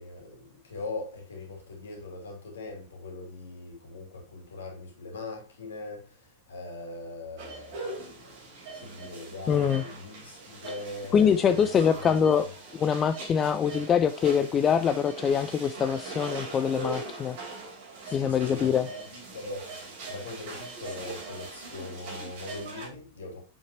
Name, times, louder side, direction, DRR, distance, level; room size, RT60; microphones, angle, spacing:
voice 1, 0.0-12.3 18.0-23.4, left 2 dB, 65° left, 2.8 m, -41 dB
sound 1, 7.4-22.9, right 3 dB, 50° right, 3.3 m, -41 dB
voice 2, 9.5-9.8 11.1-12.5 12.7-17.4 18.1-18.9, left 7 dB, 25° left, 0.4 m, -24 dB
7.3 x 5.8 x 2.9 m
figure-of-eight pair, 90°, 0 cm